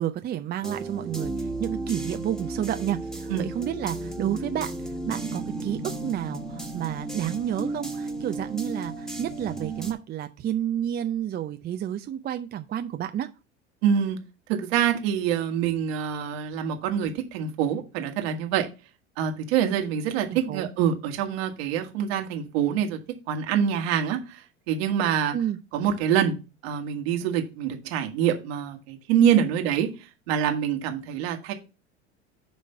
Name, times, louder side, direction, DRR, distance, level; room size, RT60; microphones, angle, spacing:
voice 1, 0.0-13.3 20.3-20.7 25.3-25.6, right 11 dB, 30° right, 0.5 m, -30 dB
sound 1, 0.6-9.9, right 2 dB, ahead, 1.5 m, -34 dB
voice 2, 13.8-14.2 14.5-18.7 19.2-23.0 23.3-24.4 24.7-25.3 25.7-26.4 26.6-29.9 30.3-31.5, right 9 dB, 65° right, 1.6 m, -25 dB
9.3 x 3.2 x 5.4 m
hypercardioid pair, 80°, 34 cm